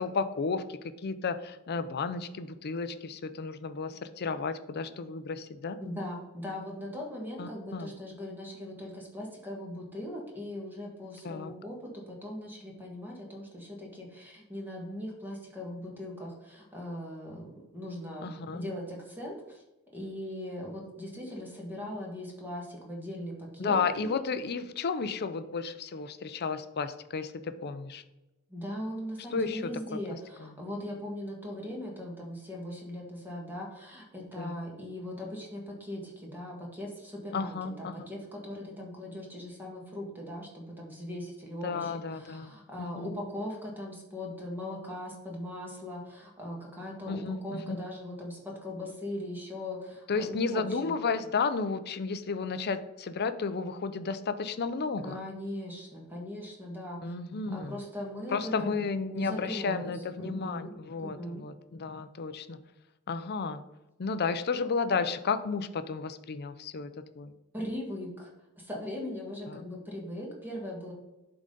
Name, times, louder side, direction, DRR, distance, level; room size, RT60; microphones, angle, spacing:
voice 1, 0.0-5.8 7.4-7.9 11.2-11.5 18.2-18.7 23.6-28.0 29.3-29.7 30.4-30.6 34.4-34.6 37.3-38.1 41.6-43.1 47.1-47.8 50.1-55.2 57.0-57.8 58.3-62.6 63.1-63.6 64.0-66.9 67.2-67.3 69.5-69.6, left 4 dB, 50° left, 11 dB, 0.5 m, -33 dB
voice 2, 5.8-19.6 19.9-24.2 28.5-50.9 55.0-57.1 57.5-58.8 59.0-60.7 61.0-61.4 67.5-68.3 68.6-70.9, left 1 dB, 10° right, -2 dB, 1.6 m, -39 dB
11.0 x 3.9 x 3.8 m, 1.0 s
head